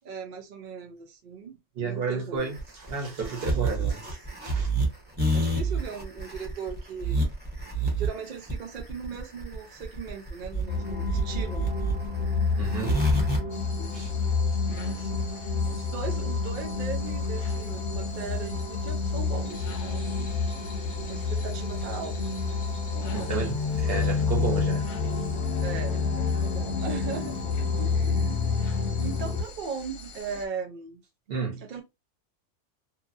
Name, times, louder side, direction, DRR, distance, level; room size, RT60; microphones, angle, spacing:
voice 1, 0.0-2.5 5.3-7.2 8.0-11.7 13.8-14.0 14.6-20.3 21.1-22.1 23.0-23.4 25.6-31.0 31.6-31.8, right 5 dB, 80° right, 0.4 m, -39 dB
voice 2, 1.8-2.6 2.9-4.7 12.5-13.0 13.9-14.1 23.1-24.8 31.3-31.6, right 5 dB, 45° right, 1.0 m, -32 dB
sound 1, 2.4-13.4, right 1 dB, 10° right, 0.8 m, -27 dB
sound 2, 10.7-29.4, left 4 dB, 35° left, 1.0 m, -29 dB
sound 3, 13.5-30.5, left 2 dB, 65° left, 1.0 m, -45 dB
2.9 x 2.4 x 2.5 m
omnidirectional pair, 1.6 m